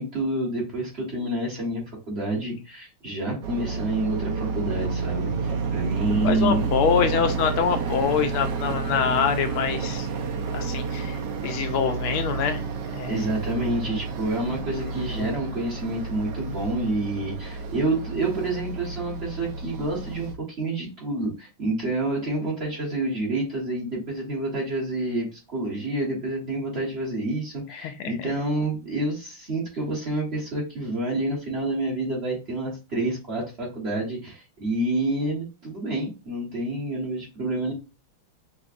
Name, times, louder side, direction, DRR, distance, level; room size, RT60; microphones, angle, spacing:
voice 1, 0.0-6.6 13.1-37.7, right 2 dB, 35° right, -2 dB, 1.4 m, -28 dB
sound 1, 3.4-20.3, right 4 dB, 65° right, 1.2 m, -30 dB
voice 2, 6.2-10.1 10.5-12.6 12.9-13.3 15.1-15.4 27.7-28.3, left 7 dB, 80° left, 7 dB, 1.5 m, -25 dB
5.8 x 2.5 x 2.5 m, 0.29 s
omnidirectional pair, 2.3 m